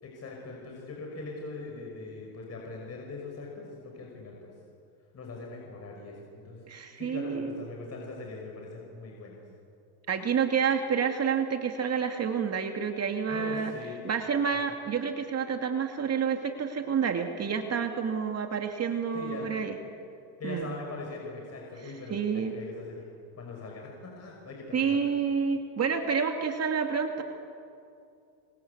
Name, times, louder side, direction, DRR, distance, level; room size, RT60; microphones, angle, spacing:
voice 1, 0.0-4.5 5.1-6.7 7.0-9.4 13.3-14.0 19.1-19.5 20.4-23.1 23.4-25.1, left 3 dB, 30° left, 0 dB, 5.9 m, -41 dB
voice 2, 6.7-7.6 10.1-13.7 14.0-19.8 20.4-20.7 21.8-22.5 24.7-27.2, right 6 dB, 30° right, 5 dB, 2.5 m, -29 dB
27.5 x 25.5 x 8.3 m, 2.5 s
supercardioid pair, 115°, 49 cm